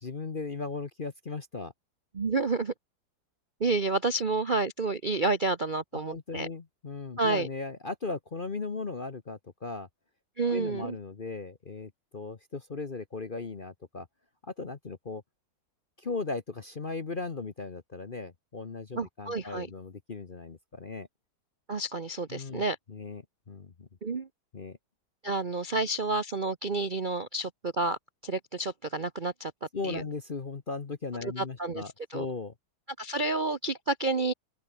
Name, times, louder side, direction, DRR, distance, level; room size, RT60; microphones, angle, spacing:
voice 1, 0.0-1.7 5.9-9.9 10.5-14.1 14.4-15.2 16.0-21.1 22.3-22.6 22.9-23.2 23.5-23.9 24.5-24.8 29.7-32.5, left 3 dB, 35° left, 1.0 m, -37 dB
voice 2, 2.1-2.7 3.6-6.5 7.2-7.5 10.4-11.0 19.0-19.7 21.7-22.8 24.0-24.3 25.2-29.5 29.8-30.0 31.2-31.8 32.1-32.3 33.0-34.3, right 3 dB, 40° right, 0.7 m, -30 dB
open air
omnidirectional pair, 2.1 m